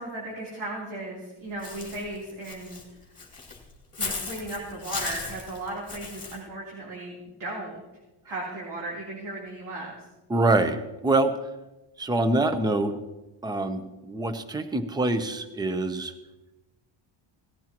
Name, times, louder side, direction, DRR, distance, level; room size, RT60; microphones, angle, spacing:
voice 1, 0.0-2.8 4.0-7.1 7.4-7.8 8.3-10.0, right 2 dB, 60° right, -4 dB, 3.6 m, -36 dB
Walk footsteps / Bird, 1.6-6.4, left 4 dB, 15° left, 2.6 m, -37 dB
voice 2, 10.3-11.3 12.0-13.0 13.4-16.1, right 2 dB, 10° right, 9 dB, 0.7 m, -25 dB
18.5 x 14.0 x 3.0 m, 1.0 s
cardioid pair, 155°, 48 cm